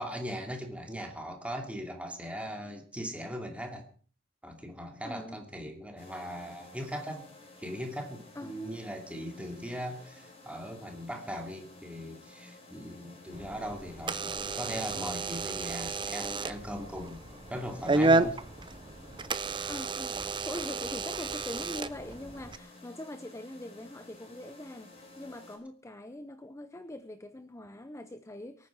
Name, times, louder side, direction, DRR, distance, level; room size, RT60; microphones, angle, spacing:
voice 1, 0.0-3.9 4.4-7.3 7.6-17.2 17.5-18.4, equal, 5° right, 3 dB, 2.7 m, -39 dB
voice 2, 5.0-5.4 8.3-8.6 19.7-28.7, left 1 dB, 15° left, 11 dB, 0.6 m, -43 dB
sound 1, 6.0-25.6, left 2 dB, 30° left, 4.4 m, -53 dB
Door / Alarm, 13.3-22.6, right 3 dB, 25° right, 0.7 m, -32 dB
23.5 x 9.4 x 4.7 m, 0.42 s
head